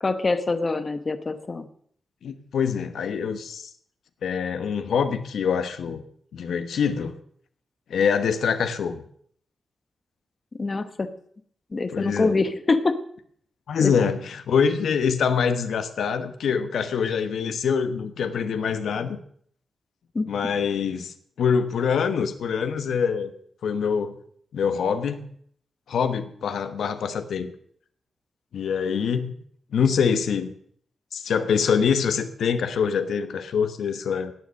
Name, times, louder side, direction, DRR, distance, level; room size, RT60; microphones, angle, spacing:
voice 1, 0.0-1.7 10.6-11.1 11.7-13.0 13.8-13.9 20.1-20.2, left 3 dB, 30° left, 10 dB, 0.9 m, -24 dB
voice 2, 2.2-3.7 4.2-6.0 6.3-7.1 7.9-9.0 11.9-12.4 13.7-19.2 20.3-23.3 23.6-24.1 24.5-25.3 25.9-27.5 28.5-29.3 29.7-30.5 31.1-34.3, left 6 dB, 85° left, 10 dB, 1.1 m, -25 dB
17.5 x 7.0 x 6.4 m, 0.63 s
wide cardioid pair, 165°, 0 cm